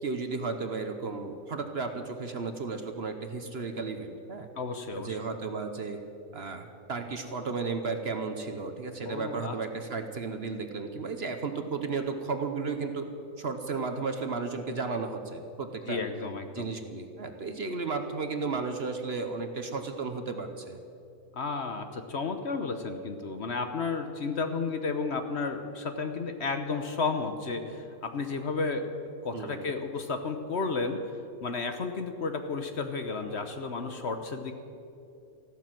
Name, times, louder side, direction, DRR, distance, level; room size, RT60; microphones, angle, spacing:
voice 1, 0.0-4.5 5.0-6.0 6.3-13.1 13.4-16.0 16.5-20.8 29.3-29.7, right 4 dB, 50° right, 7 dB, 1.0 m, -34 dB
voice 2, 4.6-5.2 9.0-9.6 15.9-16.7 21.3-28.9 29.2-34.5, left 4 dB, 50° left, 7 dB, 1.1 m, -32 dB
15.0 x 12.0 x 7.6 m, 2.7 s
omnidirectional pair, 1.6 m